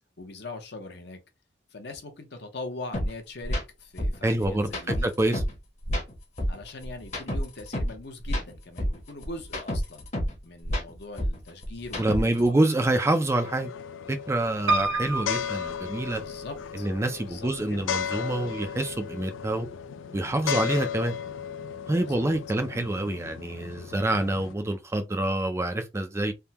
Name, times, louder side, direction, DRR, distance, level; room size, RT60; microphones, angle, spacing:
voice 1, 0.2-1.2 1.7-5.1 6.5-10.1 10.4-13.0 16.1-16.9 17.2-17.9 22.0-22.3, left 2 dB, 60° left, 0.8 m, -41 dB
sound 1, 2.9-3.1 3.4-3.6 4.0-5.6 5.8-8.0 8.2-10.4 10.6-12.5, equal, 35° left, 1.0 m, -29 dB
voice 2, 4.2-5.4 12.0-13.7 14.1-16.2 16.7-19.7 20.1-21.1 21.9-26.3, right 1 dB, 15° right, 0.3 m, -27 dB
sound 2, 13.3-24.5, left 8 dB, 90° left, 0.3 m, -35 dB
Piano, 14.7-16.7 17.3-18.0 18.3-18.4 18.6-18.7, right 2 dB, 70° right, 0.7 m, -29 dB
3.5 x 2.2 x 2.8 m
head